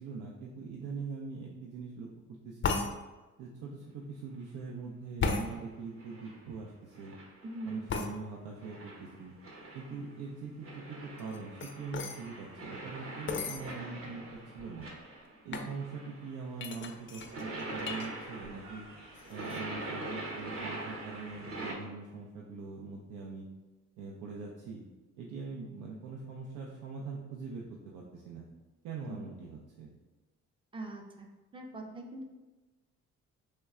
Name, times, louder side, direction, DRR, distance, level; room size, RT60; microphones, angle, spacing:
voice 1, 0.0-2.8 3.4-7.2 7.6-9.3 9.7-14.2 14.5-14.9 15.4-18.9 19.3-23.5 24.0-24.8 25.2-28.4 28.8-29.9, right 4 dB, 85° right, -2 dB, 0.5 m, -42 dB
sound 1, 2.6-2.9 5.2-5.5 7.9-8.1 11.2-12.2 13.3-13.6 14.3-14.4 14.6-15.0 15.5-15.7 16.6-18.1 18.4-18.8 19.1-19.6, left 4 dB, 40° left, 0.4 m, -34 dB
sound 2, 5.4-5.6 6.0-6.5 6.9-8.0 8.6-10.1 10.6-15.4 15.7-21.7, right 2 dB, 50° right, 0.8 m, -44 dB
voice 2, 7.4-7.8 15.5-15.8 29.0-29.2 30.7-31.3 31.5-32.2, right 1 dB, 15° right, 2 dB, 0.5 m, -42 dB
3.1 x 2.1 x 3.5 m, 1.2 s
cardioid pair, 90°, 30 cm